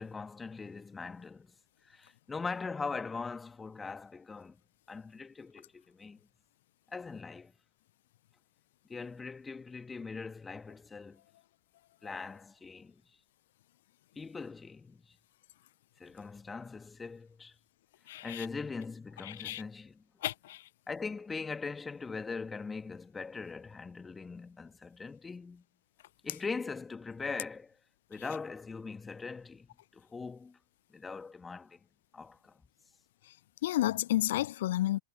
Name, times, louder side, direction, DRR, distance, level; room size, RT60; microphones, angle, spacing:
voice 1, 0.0-1.5 1.8-4.6 4.9-6.2 6.9-7.5 8.9-11.2 12.0-13.0 14.2-15.2 16.0-17.6 18.2-20.0 20.9-25.6 26.2-27.7 28.1-29.7 29.9-30.6 30.9-31.8 32.1-32.6, left 4 dB, 15° left, 2.3 m, -41 dB
voice 2, 18.1-18.5 19.2-19.6 20.2-20.7 33.6-35.0, left 14 dB, 55° left, 0.9 m, -31 dB
figure-of-eight pair, 90°, 0 cm